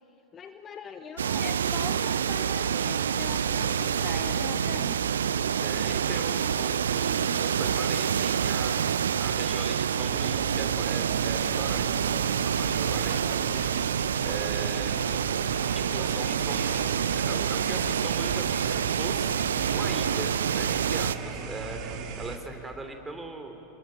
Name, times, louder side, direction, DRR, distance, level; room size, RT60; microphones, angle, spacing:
voice 1, 0.3-5.0, left 6 dB, 25° left, 8 dB, 1.1 m, -41 dB
sound 1, 1.2-21.2, right 8 dB, 65° right, 0.6 m, -27 dB
voice 2, 5.6-8.9 9.2-13.6 14.2-15.0 15.7-23.5, right 2 dB, 10° right, 5 dB, 3.3 m, -40 dB
sound 2, 10.1-22.4, right 5 dB, 40° right, 2.4 m, -37 dB
28.5 x 21.5 x 9.1 m, 3.0 s
figure-of-eight pair, 90°, 0 cm